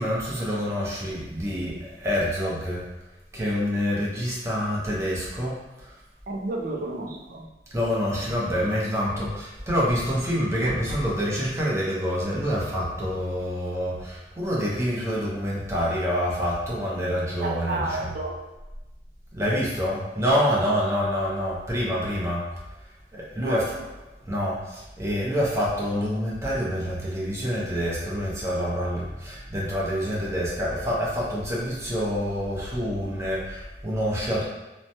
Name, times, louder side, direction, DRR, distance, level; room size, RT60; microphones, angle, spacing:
voice 1, 0.0-2.8 3.3-6.0 7.7-18.1 19.3-22.4 23.1-23.7 24.2-34.4, equal, 15° right, -6 dB, 0.7 m, -27 dB
voice 2, 6.3-7.5 17.4-18.4 23.4-23.6, right 2 dB, 55° right, 1 dB, 0.4 m, -31 dB
3.0 x 2.1 x 2.7 m, 1.1 s
head